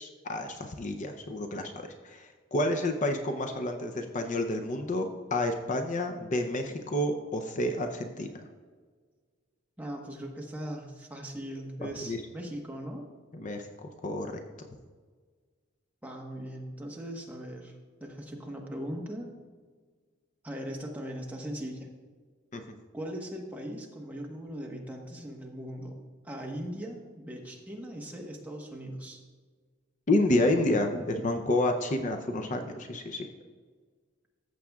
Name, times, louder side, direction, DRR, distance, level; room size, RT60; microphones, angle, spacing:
voice 1, 0.0-8.3 12.0-12.2 13.3-14.3 22.5-22.6 30.1-33.3, left 1 dB, 40° left, 4 dB, 0.6 m, -29 dB
voice 2, 9.8-13.0 16.0-17.7 18.0-19.3 20.4-21.9 22.9-25.9 26.2-29.2, equal, 10° right, -1 dB, 1.2 m, -39 dB
14.5 x 7.5 x 2.3 m, 1.5 s
head